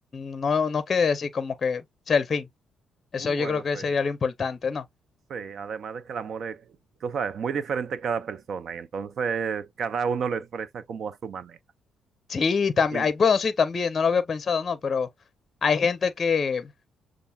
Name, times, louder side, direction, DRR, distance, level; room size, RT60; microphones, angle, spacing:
voice 1, 0.1-1.8 2.1-2.5 3.1-4.8 12.3-15.1 15.6-16.7, left 5 dB, 40° left, 0.6 m, -24 dB
voice 2, 3.2-3.9 5.3-6.7 7.0-11.6 12.9-13.1, right 6 dB, 60° right, 0.5 m, -31 dB
6.7 x 2.4 x 2.3 m
cardioid pair, 90°, 0 cm